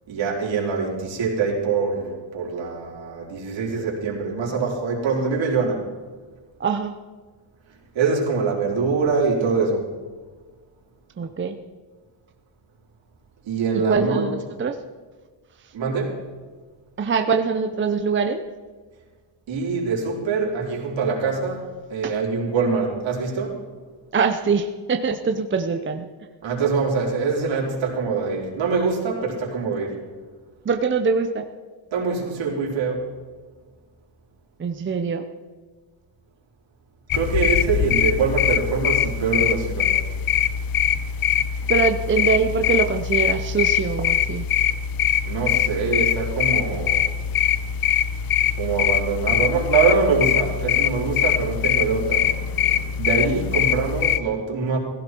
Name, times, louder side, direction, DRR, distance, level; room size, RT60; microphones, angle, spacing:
voice 1, 0.1-5.9 7.9-9.9 13.4-14.2 15.7-16.2 19.5-23.6 26.4-30.0 31.9-33.1 37.1-39.9 45.3-47.1 48.6-52.3 53.0-54.8, right 4 dB, 70° right, -2 dB, 4.4 m, -24 dB
voice 2, 6.6-7.0 11.2-11.6 13.9-14.8 15.6-15.7 17.0-18.4 22.0-22.2 24.1-26.1 30.6-31.5 34.6-35.3 41.7-44.5, right 5 dB, 25° right, 5 dB, 0.7 m, -23 dB
sound 1, 37.1-54.2, left 9 dB, 50° left, 0.6 m, -22 dB
18.0 x 16.0 x 4.6 m, 1.4 s
cardioid pair, 145°, 47 cm